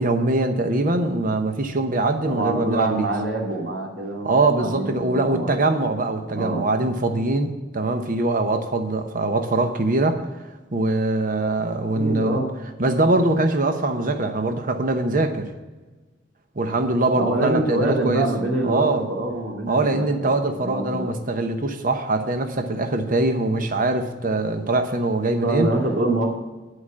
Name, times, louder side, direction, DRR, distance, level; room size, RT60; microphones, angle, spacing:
voice 1, 0.0-3.1 4.2-10.2 10.7-12.4 12.8-15.5 16.6-18.3 18.6-19.1 19.7-25.7, right 2 dB, 50° right, 7 dB, 0.9 m, -22 dB
voice 2, 2.3-5.5 6.3-6.7 11.9-12.5 17.1-21.2 25.4-26.3, right 2 dB, 85° right, -1 dB, 2.4 m, -25 dB
11.0 x 4.9 x 7.4 m, 1.2 s
head